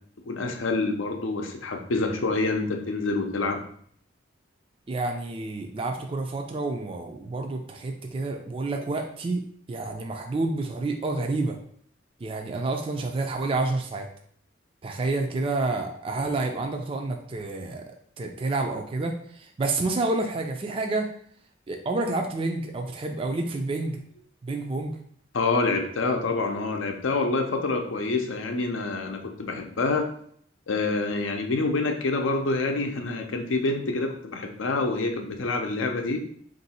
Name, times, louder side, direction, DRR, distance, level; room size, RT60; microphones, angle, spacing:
voice 1, 0.3-3.6 25.3-30.1 30.7-36.2, left 3 dB, 85° left, 4 dB, 0.6 m, -27 dB
voice 2, 4.9-9.4 9.7-11.6 12.2-14.1 14.8-21.1 21.7-24.0 24.4-25.0, right 2 dB, 30° right, 3 dB, 0.3 m, -29 dB
3.7 x 2.6 x 4.1 m, 0.62 s
head